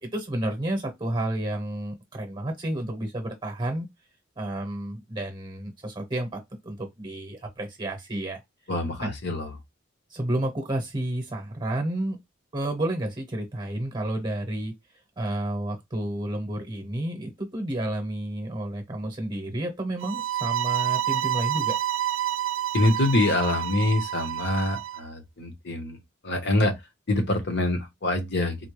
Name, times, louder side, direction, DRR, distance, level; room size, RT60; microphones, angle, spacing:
voice 1, 0.0-3.9 4.4-8.4 9.0-9.1 10.1-12.2 12.5-14.7 15.2-21.8, right 1 dB, 20° right, 0.9 m, -31 dB
voice 2, 8.7-9.5 22.7-26.0 26.2-26.7 27.1-28.6, left 2 dB, 55° left, 0.9 m, -25 dB
sound 1, 20.0-25.0, right 12 dB, 65° right, 0.3 m, -28 dB
4.0 x 2.2 x 3.1 m
head